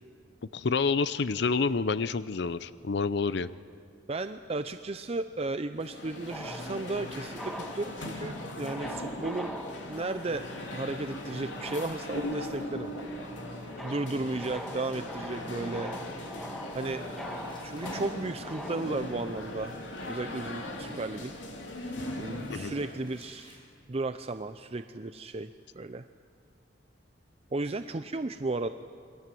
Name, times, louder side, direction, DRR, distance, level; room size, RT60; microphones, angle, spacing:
voice 1, 0.5-3.5 22.5-22.7, left 4 dB, 65° left, 15 dB, 0.6 m, -28 dB
voice 2, 4.1-9.6 9.8-10.5 10.7-15.9 16.7-19.8 20.1-21.3 22.2-23.5 23.9-25.5 25.8-26.0 27.5-28.7, right 2 dB, 35° right, 9 dB, 0.6 m, -34 dB
sound 1, 5.7-23.1, left 1 dB, 80° left, 3.3 m, -39 dB
sound 2, 6.2-18.8, equal, ahead, 1.6 m, -44 dB
sound 3, 16.7-23.6, left 1 dB, 25° left, 6.9 m, -58 dB
28.5 x 22.5 x 7.7 m, 2.2 s
head